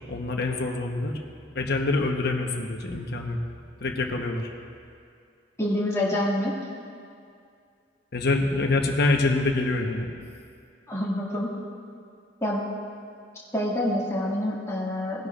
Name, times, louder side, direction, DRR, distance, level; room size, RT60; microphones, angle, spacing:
voice 1, 0.1-1.2 1.5-3.4 3.8-4.5 8.1-10.1, left 3 dB, 55° left, 3 dB, 1.1 m, -25 dB
voice 2, 5.6-6.6 10.9-11.5 12.4-12.6 13.5-15.3, left 1 dB, 15° left, -6 dB, 2.0 m, -27 dB
19.0 x 10.5 x 2.5 m, 2.4 s
head